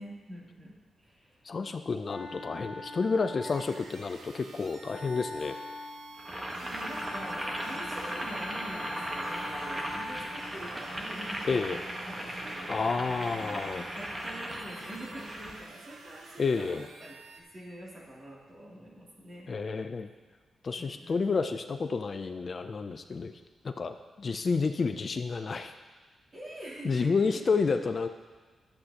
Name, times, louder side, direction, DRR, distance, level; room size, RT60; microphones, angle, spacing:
voice 1, 0.0-1.4 6.6-12.9 13.3-13.6 13.9-19.5 20.8-21.3 26.3-27.7, right 1 dB, 40° right, -5 dB, 2.8 m, -45 dB
Wind instrument woodwind instrument, 1.5-10.6, left 2 dB, 75° left, 1.2 m, -44 dB
voice 2, 1.5-5.6 11.4-11.8 12.7-13.8 16.4-16.8 19.5-20.1 20.6-23.3 23.6-25.7 26.8-28.1, left 4 dB, 45° left, 8 dB, 0.4 m, -30 dB
sound 1, 3.4-17.4, right 4 dB, 85° right, 0.8 m, -51 dB
Boiling, 6.2-15.6, right 1 dB, 20° right, 1.3 m, -37 dB
11.5 x 7.9 x 2.9 m, 1.3 s
cardioid pair, 75°, 0 cm